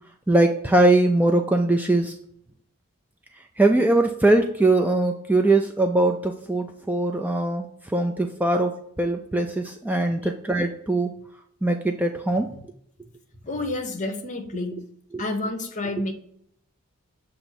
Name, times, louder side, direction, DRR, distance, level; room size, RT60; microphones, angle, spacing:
voice 1, 0.3-2.1 3.6-7.7 7.9-11.1 11.6-12.5 15.1-15.2, right 2 dB, 5° right, 3 dB, 0.3 m, -21 dB
voice 2, 13.4-14.8 15.2-16.1, left 2 dB, 35° left, 5 dB, 0.8 m, -29 dB
6.9 x 2.6 x 5.6 m, 0.68 s
head